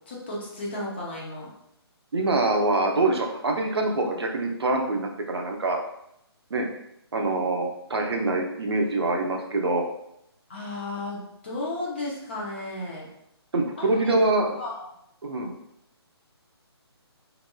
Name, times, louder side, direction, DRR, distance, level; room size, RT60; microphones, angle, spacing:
voice 1, 0.1-1.5 10.5-13.1 13.8-14.9, left 2 dB, 25° left, -4 dB, 0.6 m, -34 dB
voice 2, 2.1-5.8 6.5-6.7 7.1-9.8 13.5-14.6 15.2-15.5, right 2 dB, 70° right, 2 dB, 0.7 m, -25 dB
3.5 x 3.0 x 2.2 m, 0.77 s
hypercardioid pair, 175°, 14 cm